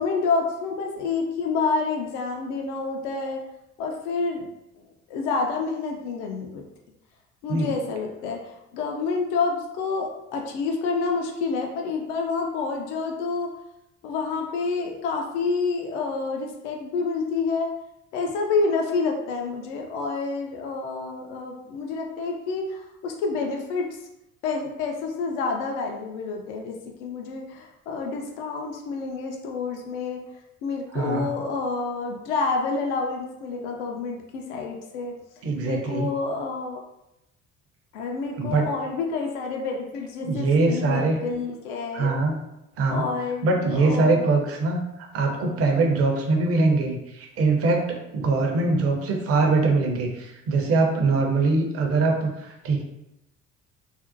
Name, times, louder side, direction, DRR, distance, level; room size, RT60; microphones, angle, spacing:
voice 1, 0.0-3.5 3.8-4.4 4.8-6.6 7.4-13.5 14.0-17.7 18.1-24.0 24.4-30.2 30.6-35.1 35.6-36.8 37.9-42.1 42.9-44.3, left 4 dB, 65° left, 2 dB, 0.5 m, -28 dB
voice 2, 30.9-31.3 35.4-36.1 38.4-38.6 40.3-41.2 41.9-42.3 42.8-43.0 43.4-52.8, right 3 dB, 35° right, 2 dB, 0.6 m, -22 dB
2.5 x 2.1 x 2.5 m, 0.88 s
figure-of-eight pair, 55°, 39 cm